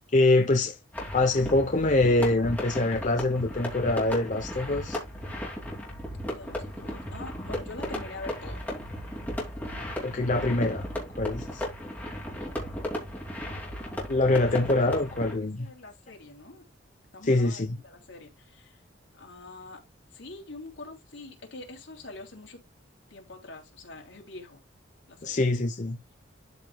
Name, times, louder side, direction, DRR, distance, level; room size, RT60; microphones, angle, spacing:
voice 1, 0.1-0.8 1.1-5.0 10.0-10.9 11.2-11.6 14.1-15.7 17.2-17.8 25.2-26.0, left 2 dB, 40° left, 0.9 m, -24 dB
sound 1, 0.9-15.3, equal, 10° left, 2.8 m, -35 dB
voice 2, 6.3-8.7 14.2-14.8 15.4-16.6 17.1-18.8 19.1-19.8 20.1-22.6 23.1-24.6 25.1-25.4, left 2 dB, 75° left, 3.2 m, -45 dB
12.5 x 5.0 x 2.3 m
head